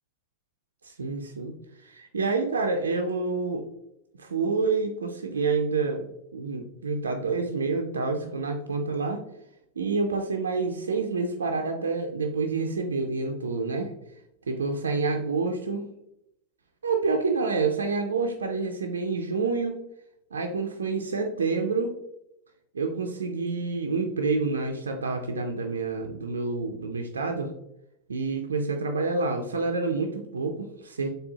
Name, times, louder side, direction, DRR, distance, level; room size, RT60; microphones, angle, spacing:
voice 1, 0.8-3.7 4.2-6.1 6.3-9.2 9.8-13.9 14.5-15.9 16.8-19.8 20.3-21.9 22.7-27.5 28.1-31.1, right 4 dB, 70° right, 3 dB, 0.4 m, -28 dB
4.2 x 3.3 x 2.8 m, 0.82 s
figure-of-eight pair, 90°, 0 cm